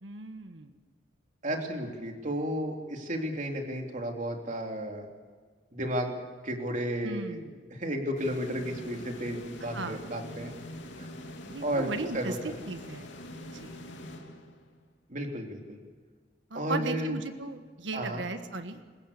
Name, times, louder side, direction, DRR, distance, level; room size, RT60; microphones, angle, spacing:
voice 1, 0.0-0.7 7.0-7.6 9.6-10.0 11.5-13.1 13.5-13.8 16.5-18.8, right 3 dB, 85° right, 8 dB, 1.4 m, -37 dB
voice 2, 1.4-5.0 5.7-6.2 6.4-7.4 7.7-10.5 11.0-11.1 11.6-12.5 15.1-15.8 16.5-17.1 17.9-18.2, equal, 45° right, 2 dB, 3.2 m, -33 dB
sound 1, 8.2-14.9, left 1 dB, 80° left, 2.8 m, -44 dB
27.5 x 16.0 x 6.8 m, 1.5 s
head